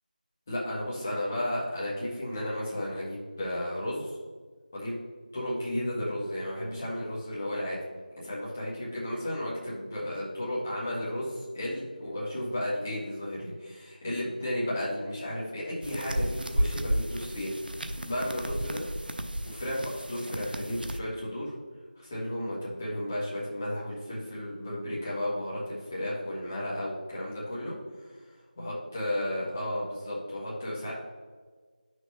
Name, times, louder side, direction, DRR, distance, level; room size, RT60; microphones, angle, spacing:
voice 1, 0.5-4.1 4.7-5.0 5.3-7.8 8.2-17.5 18.1-18.8 19.4-21.5 22.0-30.9, left 1 dB, 15° left, -7 dB, 1.5 m, -33 dB
sound 1, 15.8-21.0, equal, 85° right, 0.7 m, -33 dB
9.7 x 6.3 x 2.9 m, 1.5 s
figure-of-eight pair, 175°, 5 cm